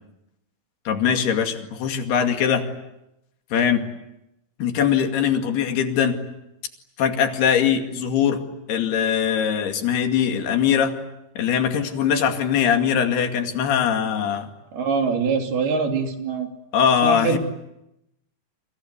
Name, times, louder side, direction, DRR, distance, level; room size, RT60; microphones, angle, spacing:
voice 1, 0.9-2.7 3.5-3.8 4.6-6.2 7.0-8.4 8.7-10.9 11.4-14.5 16.7-17.4, left 8 dB, 90° left, 5 dB, 4.4 m, -21 dB
voice 2, 14.7-16.5 17.0-17.4, right 5 dB, 75° right, 4 dB, 4.9 m, -23 dB
28.5 x 25.5 x 8.2 m, 0.88 s
omnidirectional pair, 4.4 m